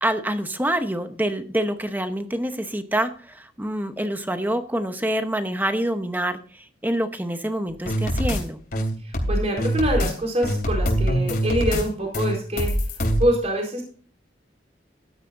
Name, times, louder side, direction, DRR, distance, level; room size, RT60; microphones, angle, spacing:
voice 1, 0.0-8.6, right 1 dB, 10° right, 8 dB, 0.9 m, -26 dB
sound 1, 7.9-8.4 8.7-10.1 10.4-11.8 12.1-13.2, equal, 55° left, 3.1 m, -23 dB
voice 2, 9.0-12.7 13.2-13.8, equal, 35° right, 0 dB, 4.3 m, -25 dB
14.5 x 12.5 x 2.6 m, 0.42 s
head